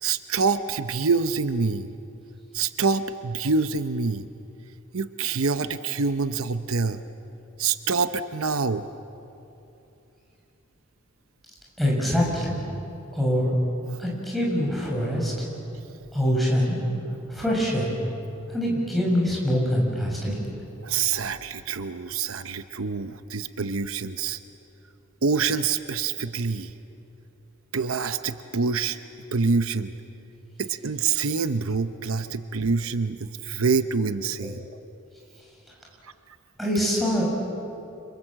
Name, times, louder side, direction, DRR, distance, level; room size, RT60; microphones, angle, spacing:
voice 1, 0.0-1.9 2.5-4.3 4.9-7.0 7.6-8.9 20.8-24.4 25.2-26.7 27.7-29.0 29.3-30.0 30.6-34.6 36.0-36.1, right 5 dB, 80° right, 10 dB, 0.8 m, -26 dB
voice 2, 11.8-12.6 13.1-13.5 14.0-15.5 16.1-16.8 17.3-17.9 18.5-20.4 36.6-37.2, equal, ahead, -4 dB, 7.0 m, -24 dB
30.0 x 26.5 x 7.5 m, 2.8 s
head